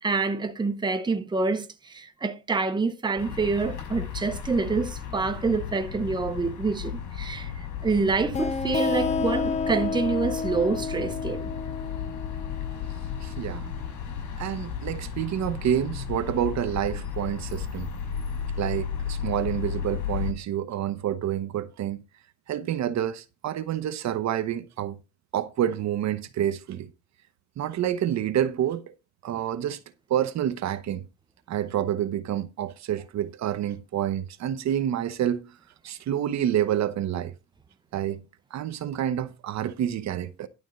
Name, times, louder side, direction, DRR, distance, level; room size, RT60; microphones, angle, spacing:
voice 1, 0.0-7.5 7.8-11.5, right 4 dB, 15° right, 0.9 m, -27 dB
sound 1, 3.2-20.3, left 8 dB, 75° left, 6.0 m, -34 dB
sound 2, 8.3-13.7, left 5 dB, 25° left, 0.6 m, -31 dB
voice 2, 13.2-13.7 14.4-17.9 18.6-22.0 22.5-25.0 25.3-26.9 27.6-28.8 29.2-29.8 30.1-31.0 31.5-35.4 35.8-37.3 37.9-38.2 38.5-40.5, right 10 dB, 60° right, 1.0 m, -28 dB
11.5 x 4.5 x 6.4 m
cardioid pair, 150°, 30 cm